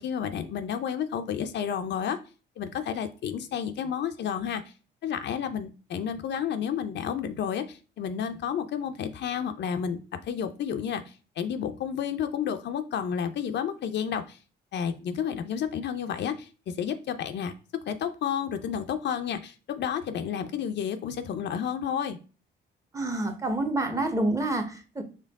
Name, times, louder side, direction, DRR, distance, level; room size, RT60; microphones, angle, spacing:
voice 1, 0.0-2.2 2.6-4.6 5.0-14.4 14.7-17.5 17.9-22.2, left 8 dB, 60° left, 8 dB, 0.5 m, -31 dB
voice 2, 22.9-25.0, right 2 dB, 15° right, 7 dB, 0.9 m, -28 dB
4.4 x 3.3 x 3.5 m, 0.35 s
cardioid pair, 90°, 20 cm